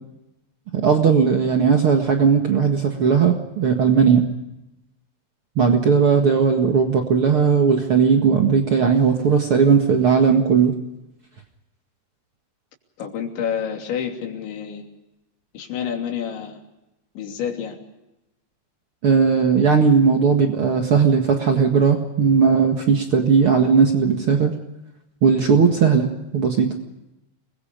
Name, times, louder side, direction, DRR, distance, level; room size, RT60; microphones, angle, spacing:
voice 1, 0.7-4.3 5.5-10.7 19.0-24.5 25.2-26.7, right 6 dB, 85° right, 3 dB, 1.2 m, -17 dB
voice 2, 13.0-14.9 15.5-16.6 17.2-17.8, left 8 dB, 70° left, 2 dB, 5.3 m, -28 dB
30.0 x 21.5 x 5.2 m, 0.93 s
omnidirectional pair, 5.6 m